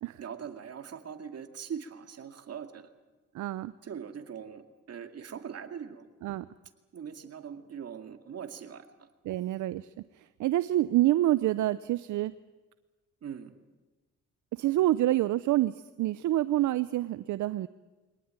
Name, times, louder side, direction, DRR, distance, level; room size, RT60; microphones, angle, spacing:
voice 1, 0.2-2.9 3.8-6.1 6.9-9.1 13.2-13.5, right 7 dB, 55° right, 7 dB, 2.2 m, -41 dB
voice 2, 3.3-3.7 6.2-6.5 9.3-9.9 10.2-12.3 14.5-17.7, right 15 dB, 75° right, 15 dB, 0.7 m, -27 dB
23.0 x 18.5 x 9.0 m, 1.2 s
cardioid pair, 90°, 30 cm